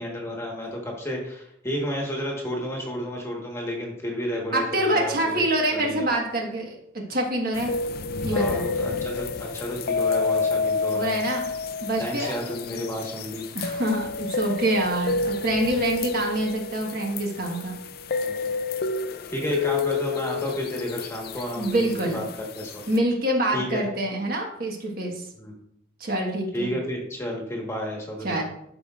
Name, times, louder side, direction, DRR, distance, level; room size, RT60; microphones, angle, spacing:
voice 1, 0.0-5.4 5.7-6.1 8.2-11.2 12.0-13.5 18.2-18.5 19.3-22.2 22.5-22.8 23.5-23.8 25.4-25.5 26.5-28.4, equal, 15° left, -1 dB, 1.3 m, -31 dB
voice 2, 4.5-7.7 8.2-8.6 10.9-11.4 11.8-12.3 13.5-17.7 21.6-22.2 22.9-25.3 26.0-26.7 28.2-28.4, right 1 dB, 50° right, 0 dB, 1.4 m, -26 dB
sound 1, 7.5-23.0, left 4 dB, 50° left, 0.4 m, -29 dB
12.5 x 5.0 x 2.5 m, 0.77 s
head